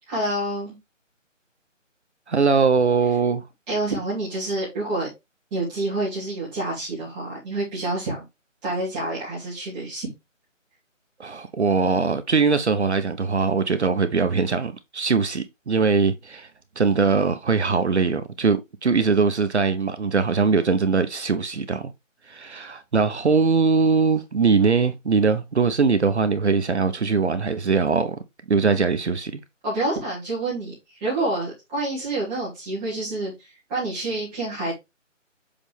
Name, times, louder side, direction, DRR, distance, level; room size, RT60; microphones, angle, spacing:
voice 1, 0.1-0.8 3.7-5.1 5.5-8.2 8.6-10.1 29.6-30.7 31.0-33.3 33.7-34.7, right 2 dB, 5° right, 1.3 m, -27 dB
voice 2, 2.3-3.4 11.2-16.5 16.8-21.9 22.3-28.2 28.5-29.3, right 5 dB, 60° right, 0.9 m, -21 dB
7.1 x 4.0 x 3.4 m
figure-of-eight pair, 170°, 38 cm